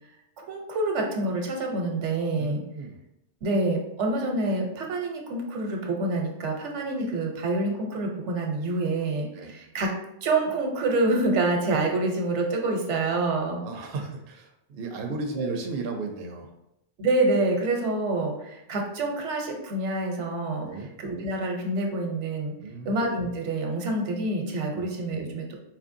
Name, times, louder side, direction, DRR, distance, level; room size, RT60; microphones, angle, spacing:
voice 1, 0.5-2.6 3.4-9.9 10.2-13.6 15.4-15.5 17.0-22.5 22.8-25.6, right 2 dB, 85° right, 2 dB, 1.1 m, -27 dB
voice 2, 2.4-3.0 9.3-9.6 13.6-16.5 20.6-20.9 22.6-22.9 24.7-24.8, right 3 dB, 65° right, 3 dB, 0.7 m, -34 dB
4.3 x 2.9 x 2.6 m, 0.84 s
omnidirectional pair, 1.2 m